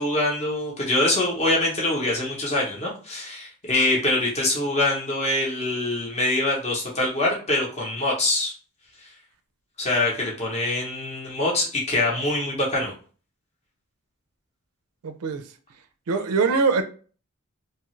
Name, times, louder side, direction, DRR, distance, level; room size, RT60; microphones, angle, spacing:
voice 1, 0.0-8.5 9.8-12.9, left 2 dB, 30° left, -3 dB, 0.8 m, -24 dB
voice 2, 15.0-15.4 16.1-16.8, right 4 dB, 80° right, 8 dB, 0.4 m, -22 dB
2.7 x 2.4 x 3.0 m, 0.40 s
head